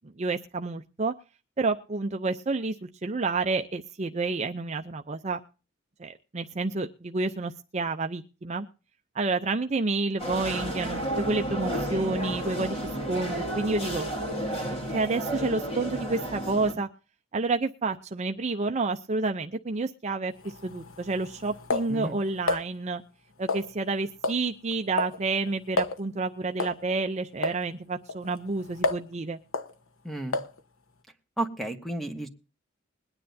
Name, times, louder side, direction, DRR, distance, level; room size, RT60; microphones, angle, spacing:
voice 1, 0.2-1.1 1.6-5.4 6.0-8.7 9.1-14.1 14.9-16.9 17.3-23.0 23.4-29.4, right 3 dB, 35° right, 6 dB, 0.5 m, -29 dB
sound 1, 10.2-16.7, right 1 dB, 30° left, 3.1 m, -32 dB
sound 2, 20.4-22.7 23.5-23.9 24.2-24.5 24.7-25.2 25.5-25.6 25.8-26.0 26.6-26.8 27.4-27.6 28.1-29.1 29.5-29.7 30.3-30.6, left 3 dB, 90° left, 1.1 m, -30 dB
voice 2, 30.0-30.4 31.4-32.3, right 1 dB, ahead, 6 dB, 1.2 m, -32 dB
21.5 x 9.9 x 2.7 m, 0.34 s
head